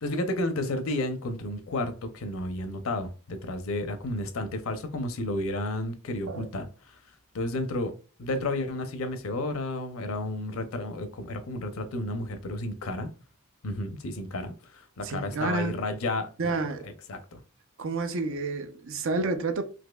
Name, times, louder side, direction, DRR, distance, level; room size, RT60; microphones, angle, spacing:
voice 1, 0.0-6.7 7.3-7.9 8.2-13.1 13.6-16.5 17.1-17.4, left 1 dB, 75° left, 0.6 m, -32 dB
voice 2, 15.0-15.8 16.4-16.9 17.8-19.6, right 3 dB, 65° right, 0.5 m, -30 dB
4.1 x 2.7 x 2.3 m
head